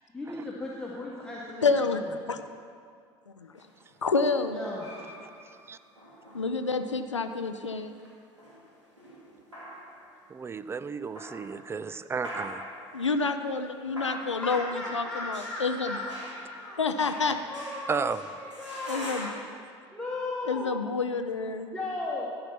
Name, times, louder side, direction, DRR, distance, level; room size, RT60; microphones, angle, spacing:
voice 1, 0.1-1.7 4.5-4.9 14.4-16.8 17.5-19.1 19.9-20.7 21.7-22.3, left 2 dB, 5° left, -5 dB, 1.3 m, -36 dB
voice 2, 1.6-2.4 3.4-3.7 4.0-4.6 6.3-7.9 12.9-16.0 16.8-17.4 18.9-19.4 20.4-21.7, left 4 dB, 85° left, 8 dB, 0.5 m, -28 dB
sound 1, 3.6-7.1 7.7-10.3 10.9-11.8 12.2-19.4, equal, 85° right, 2.2 m, -44 dB
voice 3, 10.3-12.7 17.9-18.2, right 5 dB, 15° right, 13 dB, 0.4 m, -33 dB
13.0 x 5.5 x 6.0 m, 2.2 s
figure-of-eight pair, 65°, 15 cm